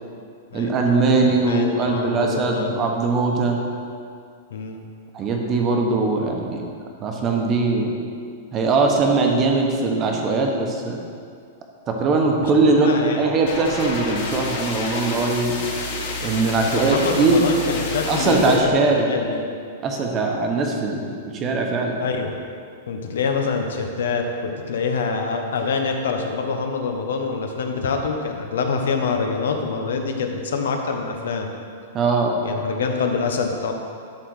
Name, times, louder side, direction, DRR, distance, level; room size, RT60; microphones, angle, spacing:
voice 1, 0.5-3.6 5.1-6.7 7.0-7.9 8.5-11.0 11.9-12.9 13.2-15.6 16.2-17.4 18.1-19.1 19.8-22.0 31.9-32.3, right 3 dB, 20° right, 1 dB, 1.0 m, -21 dB
voice 2, 1.1-2.7 4.5-4.8 12.4-13.2 16.6-19.4 22.0-22.3 22.9-31.5 32.4-33.7, left 4 dB, 80° left, 3 dB, 1.2 m, -25 dB
sound 1, 13.5-18.6, left 2 dB, 50° left, 2.5 m, -29 dB
11.5 x 4.1 x 6.4 m, 2.3 s
supercardioid pair, 170°, 0 cm